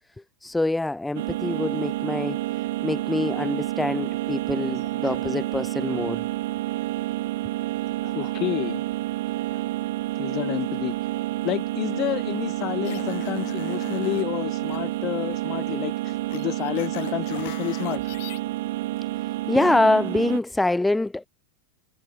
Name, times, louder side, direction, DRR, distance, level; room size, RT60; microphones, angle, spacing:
voice 1, 0.4-2.4 2.8-6.2 19.5-21.3, left 2 dB, 5° left, 0.4 m, -24 dB
sound 1, 1.1-20.4, right 17 dB, 65° right, 3.1 m, -29 dB
voice 2, 8.0-8.8 9.5-9.6 10.2-11.0 11.4-18.0, left 17 dB, 35° left, 2.0 m, -30 dB
sound 2, 12.8-14.3 14.6-14.8 16.3-18.4, left 21 dB, 55° left, 2.5 m, -40 dB
supercardioid pair, 160°, 0 cm